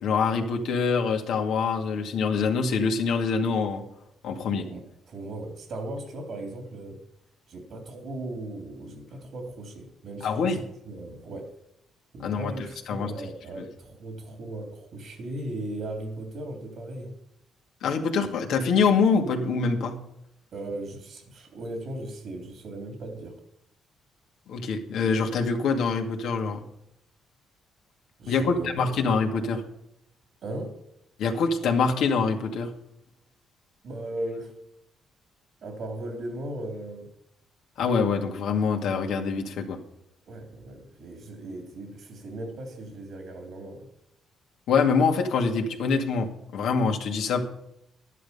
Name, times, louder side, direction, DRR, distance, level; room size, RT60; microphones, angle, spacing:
voice 1, 0.0-3.8 4.2-4.7 10.2-10.6 12.2-12.5 12.9-13.1 13.6-13.7 17.8-20.0 24.5-26.6 28.3-29.6 31.2-32.7 37.8-39.8 44.7-47.4, left 5 dB, 80° left, 3 dB, 2.2 m, -25 dB
voice 2, 4.6-7.0 7.5-10.6 10.8-11.5 12.1-17.2 20.5-23.4 28.2-29.1 30.4-30.8 33.8-34.5 35.6-37.1 40.3-43.9, right 1 dB, 70° right, 3 dB, 3.3 m, -37 dB
12.0 x 11.0 x 5.4 m, 0.78 s
cardioid pair, 90°, 0 cm